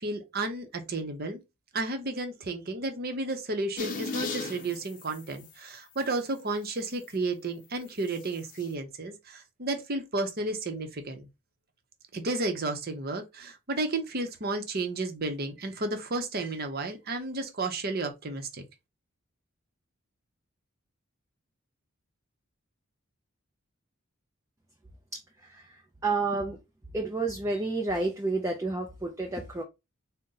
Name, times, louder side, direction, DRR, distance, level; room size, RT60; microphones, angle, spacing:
voice 1, 0.0-1.4 1.7-11.3 12.1-18.6, right 2 dB, 45° right, 0.7 m, -32 dB
sound 1, 3.8-5.5 6.0-6.1 8.1-8.6, left 3 dB, 40° left, 0.6 m, -36 dB
voice 2, 25.1-26.6 26.9-29.6, right 3 dB, 15° right, 0.4 m, -30 dB
4.0 x 2.1 x 3.8 m
head